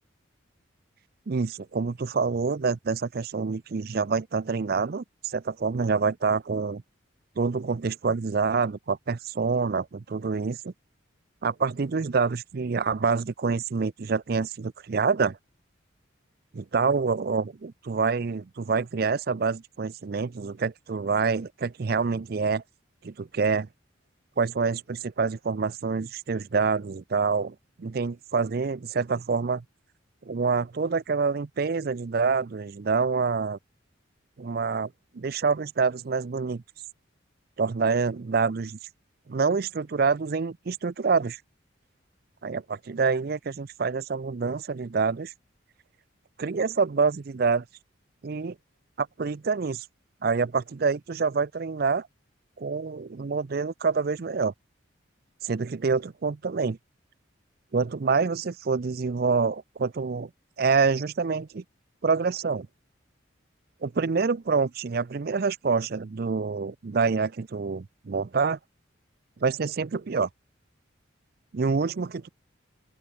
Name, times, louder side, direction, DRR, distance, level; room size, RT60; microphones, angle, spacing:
voice 1, 1.3-6.8 7.4-10.7 11.4-15.4 16.5-22.6 23.0-23.7 24.4-29.6 30.3-33.6 34.4-36.6 37.6-38.8 39.3-41.4 42.4-45.3 46.4-47.6 48.2-48.5 49.0-49.9 50.2-52.1 52.6-54.5 55.4-56.8 57.7-60.3 60.6-61.6 62.0-62.7 63.8-68.6 69.4-70.3 71.5-72.3, right 4 dB, 50° right, 0.5 m, -26 dB
open air
head